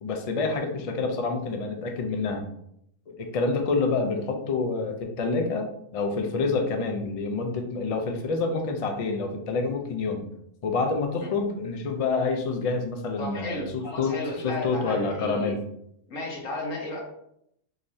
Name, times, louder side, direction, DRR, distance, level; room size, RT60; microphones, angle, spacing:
voice 1, 0.0-2.5 3.1-10.2 10.6-14.2 14.4-15.6, left 4 dB, 55° left, 4 dB, 0.4 m, -27 dB
voice 2, 13.2-15.5 16.1-17.0, left 1 dB, 85° left, -1 dB, 1.5 m, -33 dB
3.9 x 3.1 x 2.7 m, 0.74 s
omnidirectional pair, 1.3 m